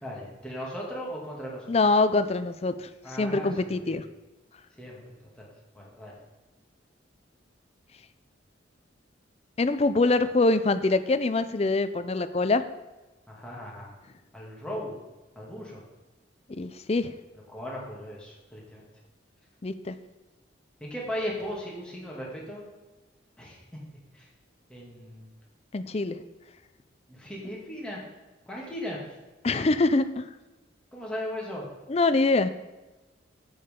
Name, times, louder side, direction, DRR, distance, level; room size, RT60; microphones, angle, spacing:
voice 1, 0.0-1.7 3.0-3.5 3.8-4.0 4.8-5.0 5.4-5.5 5.7-6.1 13.3-13.9 14.3-14.9 15.4-15.8 17.5-18.9 20.8-22.6 23.4-23.6 24.1-24.3 24.7-25.3 27.1-28.0 28.5-29.0 30.9-31.7, equal, 5° left, -5 dB, 2.3 m, -37 dB
voice 2, 1.7-2.9 3.2-4.1 9.6-12.7 16.5-17.1 19.6-20.0 25.7-26.2 29.4-30.2 31.9-32.5, left 3 dB, 30° left, 12 dB, 0.4 m, -24 dB
10.5 x 8.7 x 3.7 m, 1.1 s
head